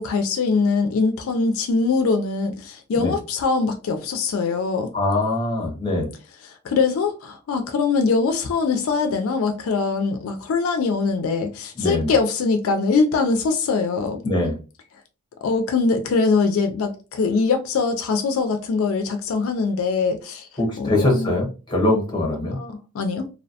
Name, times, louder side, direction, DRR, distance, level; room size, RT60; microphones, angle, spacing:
voice 1, 0.0-4.9 6.4-14.2 15.4-20.5 20.8-21.4 22.5-23.3, left 4 dB, 70° left, 0.3 m, -22 dB
voice 2, 4.9-6.1 11.8-12.1 14.2-14.5 20.6-22.6, left 1 dB, 20° left, 0.9 m, -22 dB
2.5 x 2.1 x 2.7 m
head